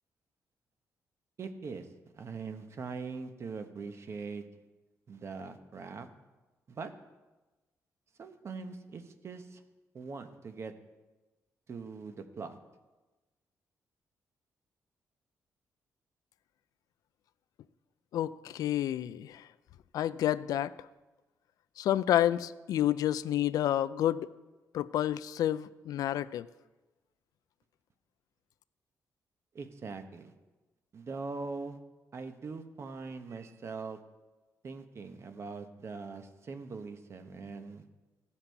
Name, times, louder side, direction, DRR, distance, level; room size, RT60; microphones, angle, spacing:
voice 1, 1.4-1.9 2.1-4.4 5.1-6.1 6.7-6.9 8.2-9.6 9.9-10.7 11.7-12.6 29.5-30.3 30.9-31.8 32.1-34.0 34.6-37.8, right 4 dB, 45° right, 8 dB, 0.9 m, -42 dB
voice 2, 18.1-19.5 19.9-20.7 21.8-24.3 24.7-26.5, left 12 dB, 80° left, 17 dB, 0.3 m, -29 dB
15.5 x 5.8 x 4.5 m, 1.2 s
cardioid pair, 110°, 6 cm